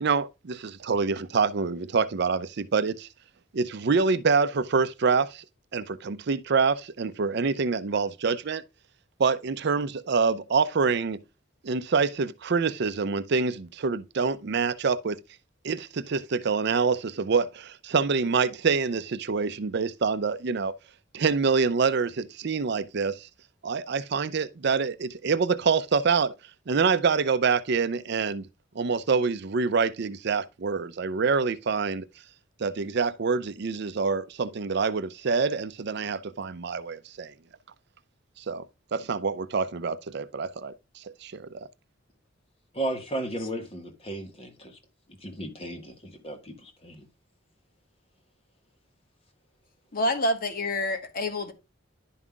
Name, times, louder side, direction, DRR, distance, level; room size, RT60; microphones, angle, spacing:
voice 1, 0.0-3.1 3.5-5.4 5.7-8.6 9.2-11.2 11.6-15.2 15.6-20.7 21.1-23.3 23.6-26.3 26.7-28.5 28.8-32.1 32.6-37.3 38.4-38.6 38.9-41.7, right 5 dB, 55° right, 0.5 m, -26 dB
voice 2, 42.7-44.7 45.2-47.0, right 1 dB, 30° left, 1.6 m, -34 dB
voice 3, 49.9-51.5, left 1 dB, 45° left, 1.4 m, -27 dB
11.0 x 5.5 x 2.4 m
head